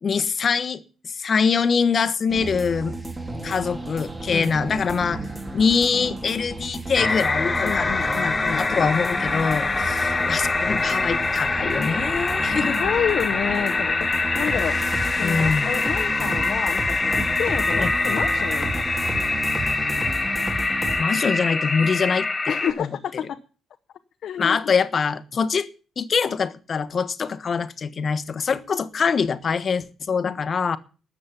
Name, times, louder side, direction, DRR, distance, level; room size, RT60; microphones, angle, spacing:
voice 1, 0.0-2.9 3.4-5.2 5.5-12.8 15.2-15.7 17.8-17.9 21.0-22.9 24.4-25.7 26.0-30.8, left 5 dB, 45° left, 13 dB, 1.2 m, -24 dB
sound 1, 2.3-21.0, right 2 dB, 20° right, 2.8 m, -33 dB
sound 2, 6.9-22.7, left 3 dB, 20° left, 1.4 m, -24 dB
voice 2, 7.6-8.9 12.5-14.8 15.1-18.9 22.5-23.4 24.2-24.7 30.3-30.4, left 9 dB, 65° left, 6 dB, 0.9 m, -29 dB
sound 3, 7.6-13.6, right 2 dB, 60° right, 5.1 m, -42 dB
13.0 x 7.6 x 9.8 m, 0.38 s
cardioid pair, 90°, 0 cm